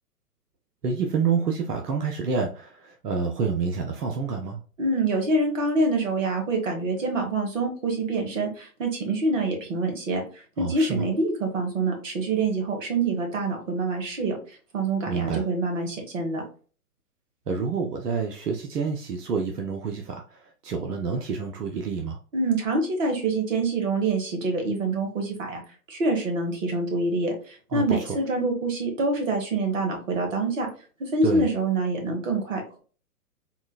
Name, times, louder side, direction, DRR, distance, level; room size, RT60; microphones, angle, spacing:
voice 1, 0.8-4.6 10.6-11.1 15.1-15.4 17.5-22.2 27.7-28.1 31.2-31.5, right 5 dB, 85° right, 2 dB, 0.6 m, -28 dB
voice 2, 4.8-10.2 10.6-14.4 14.7-16.4 22.3-25.6 25.9-30.7 31.0-32.8, right 2 dB, 55° right, 3 dB, 1.2 m, -26 dB
3.7 x 2.3 x 2.2 m, 0.39 s
figure-of-eight pair, 120°, 46 cm